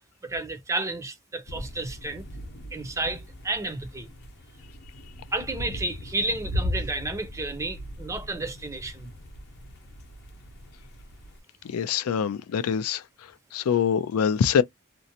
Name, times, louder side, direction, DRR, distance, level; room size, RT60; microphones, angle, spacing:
voice 1, 0.2-2.2 2.7-4.1 5.3-9.1, right 2 dB, 15° right, 0.5 m, -31 dB
sound 1, 1.5-11.4, left 1 dB, 50° left, 0.7 m, -38 dB
voice 2, 11.6-13.0 13.5-14.6, left 7 dB, 75° left, 0.4 m, -24 dB
2.6 x 2.0 x 2.7 m
head